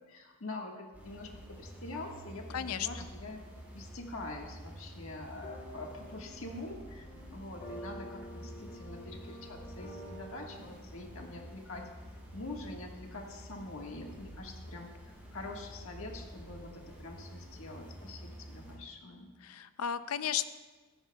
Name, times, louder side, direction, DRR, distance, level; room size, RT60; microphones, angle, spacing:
voice 1, 0.1-3.4 3.7-11.9 12.3-19.3, left 2 dB, 70° left, 1 dB, 1.6 m, -45 dB
sound 1, 0.9-18.8, equal, 10° right, 3.3 m, -49 dB
voice 2, 2.5-2.9 19.4-20.5, left 9 dB, 85° left, 13 dB, 0.5 m, -34 dB
sound 2, 5.4-10.6, equal, 35° left, 2.4 m, -48 dB
16.5 x 14.0 x 2.3 m, 1.3 s
head